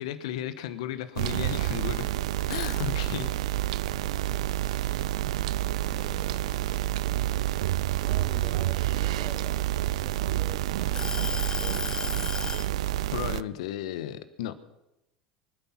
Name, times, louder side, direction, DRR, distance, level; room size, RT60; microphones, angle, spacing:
voice 1, 0.0-2.1 2.5-3.3 13.1-14.5, left 11 dB, 75° left, 13 dB, 1.3 m, -34 dB
sound 1, 1.2-13.4, right 15 dB, 80° right, 0.5 m, -28 dB
sound 2, 2.4-3.4 3.8-5.6 6.1-6.3 6.7-8.6 9.3-10.4 10.9-12.7, left 4 dB, 20° left, 0.5 m, -35 dB
voice 2, 5.8-6.7 8.0-9.6 9.9-12.1, right 1 dB, 10° right, 2 dB, 2.9 m, -46 dB
24.5 x 9.6 x 6.0 m, 0.92 s
hypercardioid pair, 85°, 3 cm